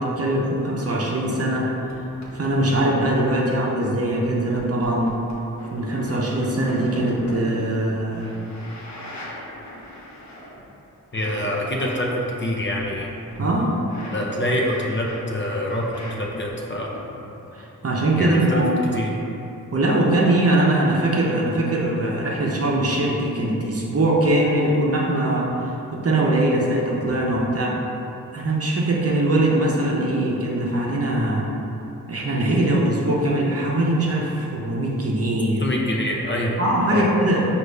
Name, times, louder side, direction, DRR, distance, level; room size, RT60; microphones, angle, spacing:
voice 1, 0.0-1.7 2.3-5.1 5.7-8.3 13.4-13.7 17.5-18.9 19.7-27.8 28.3-31.5 32.1-35.7 36.6-37.5, right 1 dB, 45° right, -3 dB, 0.7 m, -21 dB
sound 1, 1.9-2.0 2.2-2.3 2.8-3.3 3.8-3.9 4.6-10.8 11.1-12.2 12.8-16.2 16.5-17.0, equal, 55° left, 1.0 m, -39 dB
voice 2, 11.1-12.1 12.4-13.1 14.1-16.9 18.2-18.7 18.9-19.1 35.6-36.6 36.9-37.1, left 1 dB, 35° left, -2 dB, 0.6 m, -25 dB
5.0 x 2.6 x 3.3 m, 2.9 s
cardioid pair, 50°, 34 cm